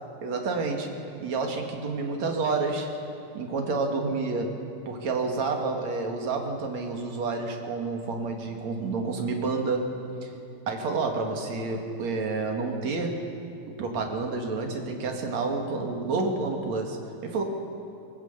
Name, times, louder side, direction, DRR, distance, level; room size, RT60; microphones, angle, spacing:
voice 1, 0.2-0.9 1.2-2.9 3.3-4.5 4.9-9.9 10.2-10.3 10.7-13.1 13.7-17.0 17.2-17.4, right 3 dB, 45° right, 2 dB, 3.1 m, -29 dB
22.5 x 20.0 x 8.2 m, 2.6 s
omnidirectional pair, 4.8 m